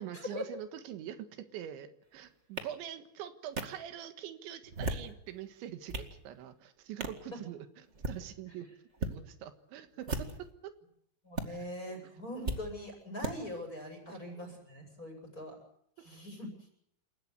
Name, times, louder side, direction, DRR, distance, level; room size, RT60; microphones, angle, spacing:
voice 1, 0.0-8.7 9.0-10.7 11.4-11.7 12.0-12.1 14.1-14.5, right 10 dB, 90° right, 9 dB, 3.8 m, -44 dB
sound 1, 2.6-2.7 3.6-3.7 4.6-5.1 5.6-6.1 7.0-7.2 7.9-8.2 8.9-9.1 10.0-10.5 11.3-11.4 12.4-12.6 13.2-13.3, right 2 dB, 65° right, 0.7 m, -35 dB
voice 2, 11.2-15.6 16.0-16.5, left 1 dB, 20° left, 3 dB, 7.9 m, -42 dB
28.5 x 16.5 x 8.1 m, 0.74 s
omnidirectional pair, 5.1 m